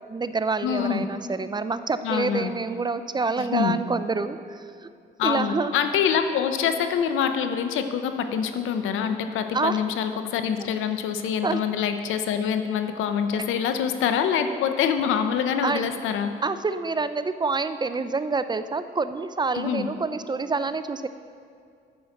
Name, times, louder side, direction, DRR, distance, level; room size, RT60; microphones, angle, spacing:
voice 1, 0.1-4.9 5.2-5.7 9.5-9.8 11.4-11.6 13.3-13.4 15.6-15.9 16.4-21.1, right 4 dB, 20° right, 12 dB, 0.4 m, -27 dB
voice 2, 0.6-1.1 2.0-2.5 3.4-3.8 5.2-16.3 19.5-19.9, left 7 dB, 85° left, 8 dB, 0.7 m, -25 dB
8.7 x 6.4 x 7.0 m, 2.3 s
cardioid pair, 90°, 20 cm